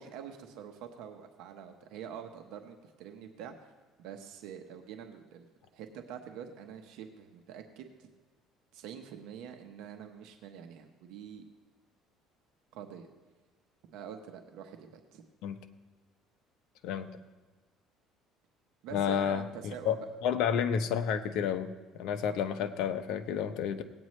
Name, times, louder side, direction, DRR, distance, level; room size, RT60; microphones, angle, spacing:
voice 1, 0.0-3.5 4.0-8.1 8.7-11.4 12.7-13.1 13.9-15.3 18.8-20.0, right 8 dB, 75° right, 5 dB, 1.0 m, -46 dB
voice 2, 16.8-17.2 18.9-19.9 20.2-23.8, left 8 dB, 70° left, 7 dB, 0.7 m, -31 dB
18.5 x 8.9 x 3.2 m, 1.3 s
cardioid pair, 135°, 0 cm